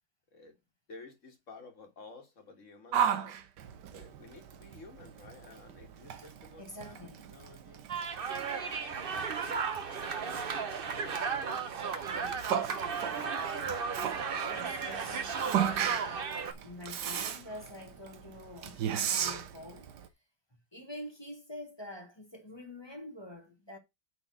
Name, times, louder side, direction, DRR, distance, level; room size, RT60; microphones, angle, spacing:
voice 1, 0.9-3.4 3.9-7.9 8.4-13.2, left 3 dB, 45° left, 2.2 m, -54 dB
Yell, 2.9-20.1, right 9 dB, 70° right, 1.5 m, -36 dB
voice 2, 6.6-7.3 9.1-9.3 14.0-16.2 16.6-20.1 20.7-23.8, left 1 dB, 15° left, 1.2 m, -46 dB
sound 1, 7.9-16.5, right 5 dB, 45° right, 0.8 m, -35 dB
8.9 x 4.1 x 6.0 m
omnidirectional pair, 1.9 m